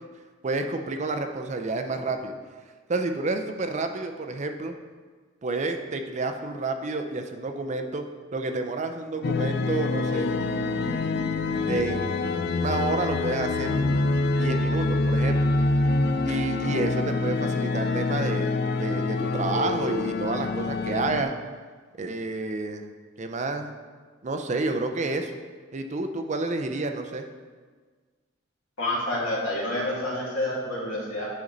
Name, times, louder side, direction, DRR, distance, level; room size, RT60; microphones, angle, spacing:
voice 1, 0.4-2.3 2.9-4.8 5.4-8.1 8.3-10.3 11.7-14.1 14.4-15.5 16.3-18.5 18.8-21.3 22.0-22.8 23.2-23.7 24.2-25.3 25.7-27.3, right 3 dB, 35° right, 6 dB, 0.5 m, -29 dB
sound 1, 9.2-21.2, left 3 dB, 50° left, 0.4 m, -26 dB
voice 2, 28.8-31.3, left 1 dB, 85° left, -5 dB, 2.2 m, -28 dB
9.2 x 4.0 x 3.9 m, 1.5 s
head